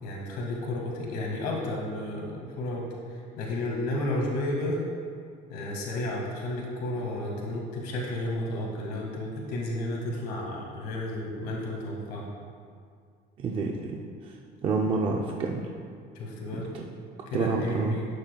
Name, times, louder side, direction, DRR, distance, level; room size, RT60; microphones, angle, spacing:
voice 1, 0.0-4.8 5.5-12.3 16.2-16.7 17.3-18.1, left 1 dB, 65° left, -2 dB, 1.8 m, -32 dB
voice 2, 13.4-14.0 14.2-14.3 14.6-15.7 16.7-16.8 17.3-18.0, right 4 dB, 30° right, 0 dB, 0.5 m, -28 dB
12.0 x 8.7 x 2.3 m, 2.2 s
cardioid pair, 170°, 17 cm